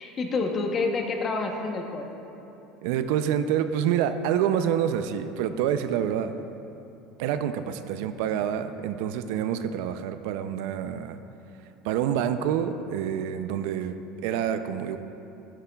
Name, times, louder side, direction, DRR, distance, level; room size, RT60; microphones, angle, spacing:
voice 1, 0.0-2.1, left 3 dB, 30° left, 3 dB, 0.9 m, -28 dB
voice 2, 2.8-6.3 7.2-11.2 11.8-15.0, right 9 dB, 75° right, 10 dB, 0.4 m, -27 dB
12.5 x 10.0 x 2.3 m, 2.9 s
supercardioid pair, 135°, 0 cm